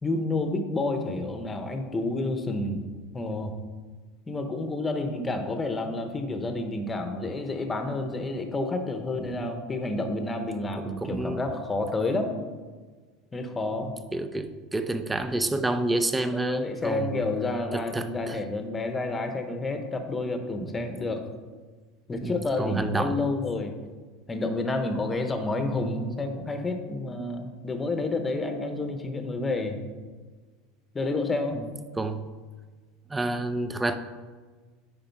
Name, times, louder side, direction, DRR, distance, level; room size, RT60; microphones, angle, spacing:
voice 1, 0.0-2.8 3.1-3.5 4.3-12.4 13.3-13.9 16.3-21.2 22.1-23.8 24.3-29.8 30.9-31.6, left 2 dB, 15° left, 6 dB, 1.0 m, -29 dB
voice 2, 9.2-9.6 10.8-11.5 13.8-17.2 17.7-18.4 20.6-20.9 22.2-23.3 31.5-31.6 32.0-32.3 33.1-34.0, right 2 dB, 10° right, 10 dB, 0.6 m, -29 dB
9.6 x 4.9 x 4.6 m, 1.4 s
supercardioid pair, 120°, 0 cm